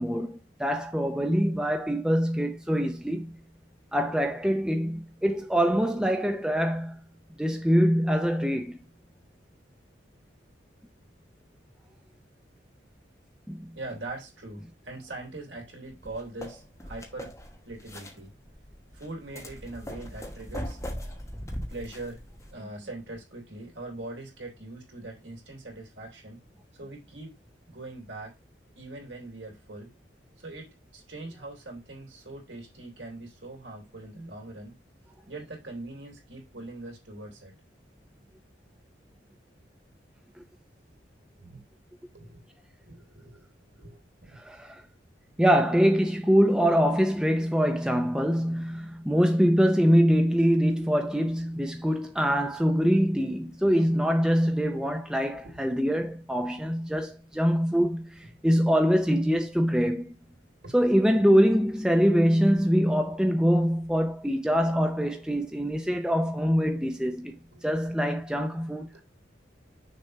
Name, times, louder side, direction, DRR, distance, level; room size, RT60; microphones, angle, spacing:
voice 1, 0.0-3.3 3.9-7.0 7.4-8.8 13.5-13.7 44.4-44.8 45.4-60.1 60.7-69.0, equal, 5° right, 0.6 m, -24 dB
voice 2, 13.7-17.3 17.6-18.3 18.9-20.8 21.7-22.2 22.5-26.4 26.7-27.3 27.7-28.3 28.8-29.9 30.4-34.7 35.3-37.5 41.4-41.6 42.1-42.4 42.8-43.5 43.7-44.4 55.4-55.7 67.5-67.7 68.9-69.0, right 2 dB, 70° right, 3.1 m, -42 dB
sound 1, 15.9-22.5, equal, 15° left, 1.3 m, -40 dB
6.6 x 3.4 x 5.2 m
head